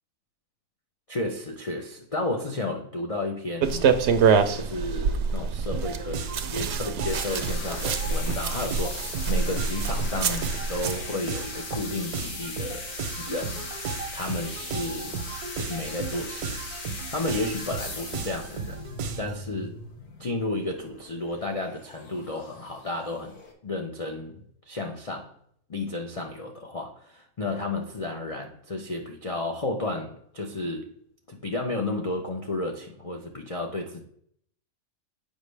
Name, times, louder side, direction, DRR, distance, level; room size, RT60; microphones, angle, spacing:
voice 1, 1.1-3.9 4.5-12.9 13.2-13.7 14.1-15.2 15.5-16.6 16.9-18.8 19.2-19.8 20.2-25.3 25.7-30.9 31.3-34.0, left 2 dB, 70° left, 2 dB, 0.3 m, -32 dB
sound 1, 3.6-11.0, right 6 dB, 65° right, 0.7 m, -26 dB
sound 2, 5.7-19.4, right 5 dB, 85° right, 1.3 m, -36 dB
sound 3, 7.1-23.5, left 3 dB, 85° left, 1.7 m, -39 dB
7.3 x 5.1 x 3.3 m, 0.66 s
omnidirectional pair, 1.6 m